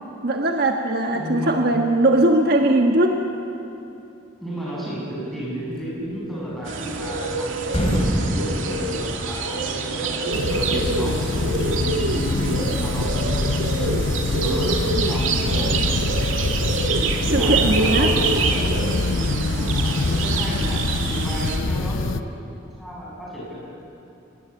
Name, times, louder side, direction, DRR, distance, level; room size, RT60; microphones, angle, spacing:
voice 1, 0.2-3.3 17.3-18.1, right 1 dB, 55° right, 3 dB, 1.4 m, -19 dB
voice 2, 1.1-1.6 4.4-15.9 17.3-18.9 19.2-23.5, equal, ahead, -6 dB, 7.9 m, -32 dB
sound 1, 6.5-7.3 7.6-9.8, equal, 30° left, 3.6 m, -25 dB
sound 2, 6.6-21.6, right 4 dB, 85° right, 2.3 m, -26 dB
sound 3, 10.3-22.2, left 3 dB, 85° left, 0.8 m, -25 dB
25.0 x 19.5 x 8.4 m, 2.7 s
head